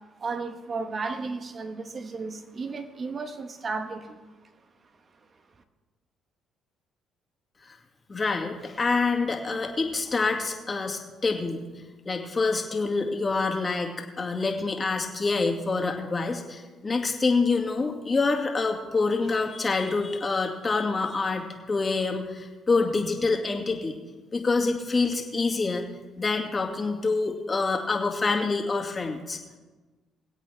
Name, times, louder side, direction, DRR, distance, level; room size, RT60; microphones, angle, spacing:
voice 1, 0.2-4.2, right 4 dB, 40° right, 7 dB, 1.3 m, -34 dB
voice 2, 8.1-11.6 12.1-24.0 24.3-25.8 26.2-29.4, left 3 dB, 35° left, 2 dB, 2.2 m, -26 dB
23.5 x 8.2 x 3.4 m, 1.3 s
supercardioid pair, 65°, 0 cm